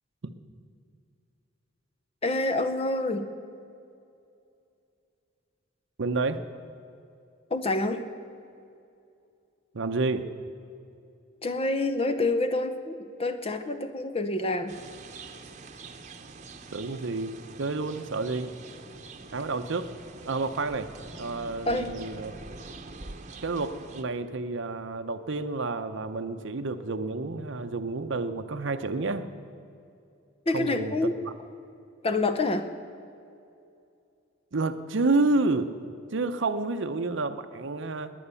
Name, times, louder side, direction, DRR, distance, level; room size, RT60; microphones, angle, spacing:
voice 1, 2.2-3.3 7.5-8.1 11.4-14.8 21.7-21.9 30.5-31.1 32.0-32.7, left 2 dB, 30° left, 9 dB, 0.7 m, -27 dB
voice 2, 6.0-6.4 9.7-10.3 16.7-17.3 17.6-18.5 19.3-19.9 20.3-20.9 21.2-22.3 23.4-29.3 30.5-31.3 34.5-35.7 36.1-38.1, right 3 dB, 65° right, 8 dB, 0.7 m, -29 dB
sound 1, 14.7-24.0, right 3 dB, 35° right, 1.0 m, -45 dB
21.0 x 9.3 x 7.0 m, 2.6 s
head